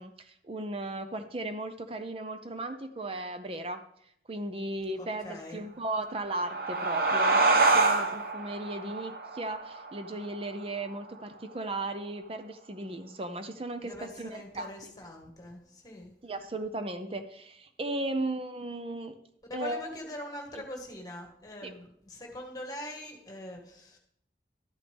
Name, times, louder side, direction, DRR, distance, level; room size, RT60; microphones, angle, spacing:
voice 1, 0.0-3.8 4.3-14.9 16.2-19.2 19.5-20.0 20.5-20.6 21.6-21.7, right 2 dB, 30° right, 8 dB, 0.6 m, -36 dB
voice 2, 5.2-5.6 13.8-16.1 19.5-24.0, left 1 dB, 20° left, 1 dB, 1.6 m, -43 dB
sound 1, 6.0-11.2, right 3 dB, 55° right, 1.0 m, -27 dB
12.0 x 9.0 x 3.5 m, 0.71 s
head